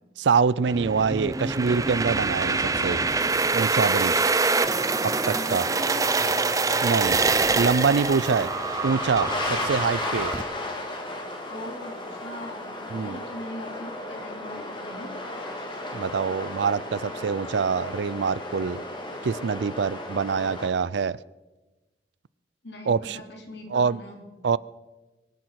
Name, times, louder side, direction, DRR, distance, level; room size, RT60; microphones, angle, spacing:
voice 1, 0.2-3.0 3.5-4.1 5.3-5.6 6.8-7.2 7.6-8.5 8.8-10.3 12.9-13.2 15.9-18.8 19.2-21.2 22.9-23.2 23.7-24.0 24.4-24.6, right 5 dB, 80° right, 21 dB, 0.4 m, -25 dB
sound 1, 0.7-10.4, right 4 dB, 20° right, 0.5 m, -25 dB
sound 2, 2.2-20.7, left 1 dB, 25° left, 2.1 m, -35 dB
voice 2, 5.1-6.5 11.5-15.1 15.9-16.1 22.6-24.3, equal, 70° left, 2 dB, 3.1 m, -41 dB
24.0 x 10.5 x 4.7 m, 1.1 s
head